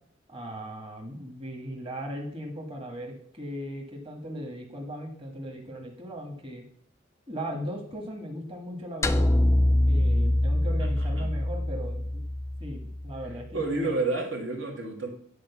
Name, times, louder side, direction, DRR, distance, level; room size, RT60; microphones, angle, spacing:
voice 1, 0.3-6.6 7.3-9.3 9.9-12.2 12.6-14.0, equal, 30° right, 0 dB, 1.5 m, -38 dB
sound 1, 9.0-13.4, left 1 dB, 15° left, 0.4 m, -24 dB
voice 2, 10.8-11.3 13.5-15.1, right 3 dB, 80° right, 0 dB, 2.1 m, -30 dB
10.5 x 4.3 x 7.0 m, 0.65 s
head